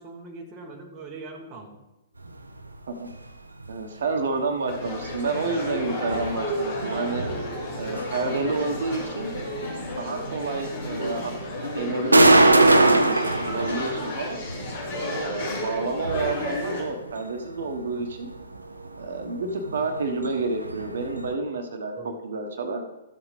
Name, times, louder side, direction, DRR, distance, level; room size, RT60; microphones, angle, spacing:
voice 1, 0.0-1.8 7.2-7.9 17.9-18.1 22.0-22.1, right 3 dB, 25° right, 2 dB, 1.1 m, -42 dB
sound 1, 2.2-21.3, right 2 dB, 75° right, 0.7 m, -26 dB
voice 2, 3.7-7.3 7.8-9.3 10.0-11.3 11.7-14.4 14.9-18.3 19.0-22.8, right 3 dB, 55° right, 5 dB, 1.2 m, -29 dB
sound 2, 4.7-16.8, left 1 dB, 50° left, 3.6 m, -32 dB
13.5 x 7.3 x 3.3 m, 1.0 s
figure-of-eight pair, 115°, 0 cm